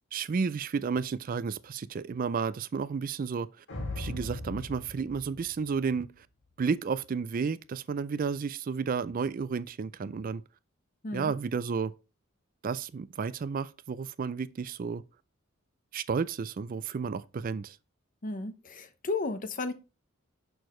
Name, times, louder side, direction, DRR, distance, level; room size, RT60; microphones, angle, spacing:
voice 1, 0.1-3.5 4.0-6.3 6.6-10.4 11.1-11.9 12.6-15.0 15.9-17.8, right 5 dB, 45° right, 0.4 m, -32 dB
sound 1, 3.7-6.2, left 2 dB, 60° left, 1.4 m, -39 dB
voice 2, 18.2-19.7, left 3 dB, 40° left, 0.8 m, -34 dB
6.6 x 6.1 x 3.1 m
head